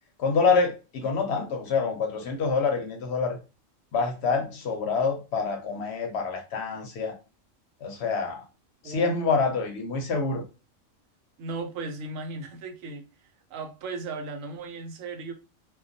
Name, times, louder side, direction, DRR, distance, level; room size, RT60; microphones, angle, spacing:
voice 1, 0.2-3.4 3.9-7.1 7.8-8.4 8.8-10.4, left 4 dB, 65° left, 0.8 m, -26 dB
voice 2, 8.8-9.1 11.4-15.3, right 3 dB, 90° right, 1.0 m, -36 dB
2.2 x 2.2 x 2.5 m
omnidirectional pair, 1.3 m